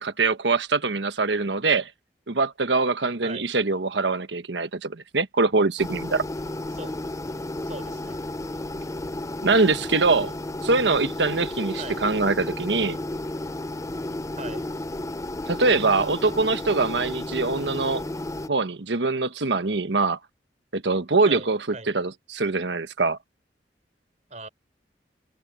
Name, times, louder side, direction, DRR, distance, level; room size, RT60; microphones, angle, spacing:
voice 1, 0.0-1.9 2.3-6.2 9.4-10.3 10.6-13.0 15.5-18.0 18.5-20.2 20.7-23.2, right 3 dB, 90° right, 1.3 m, -23 dB
sound 1, 5.8-18.5, left 1 dB, 20° left, 0.5 m, -33 dB
voice 2, 7.5-8.2 11.8-12.0 14.4-14.6 21.2-21.5 21.7-21.9 24.3-24.5, right 3 dB, 40° right, 4.2 m, -39 dB
head